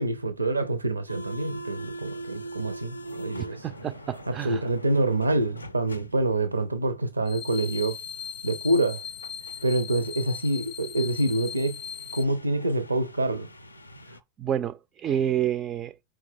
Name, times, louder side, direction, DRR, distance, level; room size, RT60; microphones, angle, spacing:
voice 1, 0.0-3.7 4.3-8.0 8.4-9.0 9.6-11.8 12.1-13.5, right 2 dB, 80° right, 0.5 m, -26 dB
sound 1, 1.1-14.2, right 1 dB, 80° left, 0.5 m, -43 dB
voice 2, 3.4-4.6 14.4-15.9, right 10 dB, 30° right, 0.3 m, -29 dB
sound 2, 7.3-12.2, left 8 dB, 25° left, 0.5 m, -39 dB
4.7 x 3.2 x 3.5 m
figure-of-eight pair, 90°, 0 cm